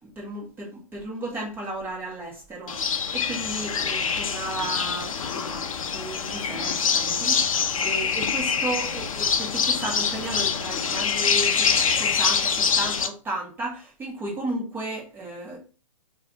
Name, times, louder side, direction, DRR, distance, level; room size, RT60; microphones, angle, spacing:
voice 1, 0.2-5.6 5.9-7.4 7.8-11.7 12.0-15.6, right 2 dB, 10° right, 1.1 m, -34 dB
sound 1, 2.7-13.1, left 6 dB, 75° left, 0.6 m, -25 dB
3.3 x 2.4 x 3.8 m
hypercardioid pair, 140°, 18 cm